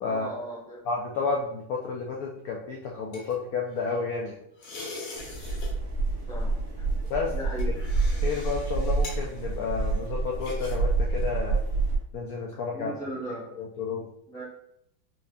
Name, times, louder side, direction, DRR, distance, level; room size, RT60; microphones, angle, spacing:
voice 1, 0.1-0.8 6.3-6.8 7.3-7.7 12.7-13.5 13.9-14.4, right 1 dB, 5° left, -7 dB, 0.7 m, -38 dB
voice 2, 0.9-4.3 7.1-7.3 8.2-11.6 12.1-13.1 13.6-14.0, left 4 dB, 75° left, -1 dB, 0.8 m, -31 dB
sound 1, 2.6-4.2 4.6-5.7 6.0-6.3 7.0-10.8 11.1-11.3, left 2 dB, 55° left, 1.1 m, -43 dB
sound 2, 5.2-12.0, right 3 dB, 60° right, 1.3 m, -28 dB
4.5 x 2.6 x 2.4 m, 0.74 s
omnidirectional pair, 2.1 m